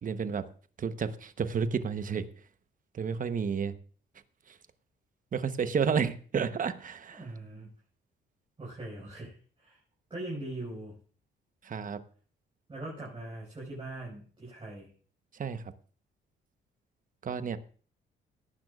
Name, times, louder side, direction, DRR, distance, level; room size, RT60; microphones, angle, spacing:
voice 1, 0.0-0.4 0.8-2.2 2.9-3.7 5.3-7.2 11.6-12.0 15.4-15.6 17.2-17.6, right 6 dB, 40° right, 11 dB, 1.0 m, -31 dB
voice 2, 7.1-7.7 8.6-9.8 10.1-11.0 12.7-14.9, right 2 dB, 25° right, -5 dB, 5.2 m, -41 dB
18.0 x 10.5 x 2.4 m, 0.42 s
cardioid pair, 90°, 20 cm